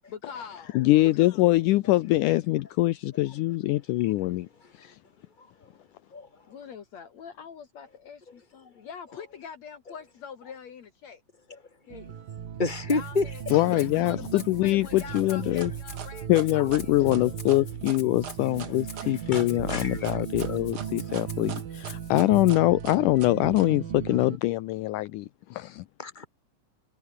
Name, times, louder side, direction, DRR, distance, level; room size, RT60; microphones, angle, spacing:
voice 1, 0.1-0.9 6.5-11.2 11.9-12.2 12.9-17.2, left 6 dB, 55° left, 2.7 m, -44 dB
voice 2, 0.7-4.5 4.8-5.0 13.5-15.7 16.3-25.8, left 18 dB, 75° left, 2.1 m, -24 dB
voice 3, 5.4-5.7 6.1-6.3 11.5-11.6 12.6-13.6 15.4-15.5 18.4-18.8 19.0-20.2 20.5-20.6 20.9-21.0 26.0-26.3, left 3 dB, 15° left, 3.3 m, -32 dB
sound 1, 11.9-24.4, right 8 dB, 85° right, 4.2 m, -37 dB
Rattle (instrument), 12.9-22.5, left 4 dB, 35° left, 4.7 m, -48 dB
sound 2, 15.1-23.7, right 7 dB, 45° right, 1.4 m, -41 dB
omnidirectional pair, 3.9 m